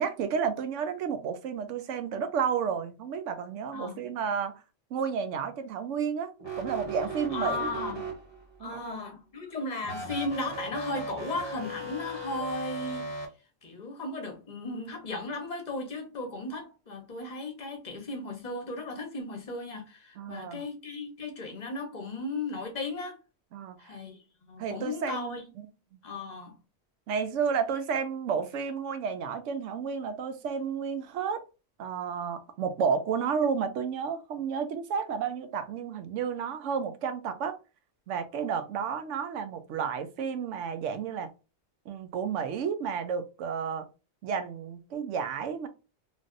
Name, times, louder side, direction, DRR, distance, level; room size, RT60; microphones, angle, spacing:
voice 1, 0.0-4.5 4.9-6.3 6.6-7.7 8.6-8.9 20.2-20.6 23.5-24.0 24.6-25.4 27.1-31.4 31.8-37.6 38.1-41.3 41.9-43.9 44.2-45.7, right 6 dB, 75° right, 0.9 m, -31 dB
voice 2, 3.7-4.0 7.3-8.1 8.6-13.2 13.6-23.2 23.8-25.5 26.0-26.6, left 2 dB, 35° left, 1.0 m, -36 dB
sound 1, 6.4-8.6 9.8-13.3, right 2 dB, 25° right, 0.9 m, -37 dB
3.2 x 2.6 x 2.5 m
omnidirectional pair, 1.3 m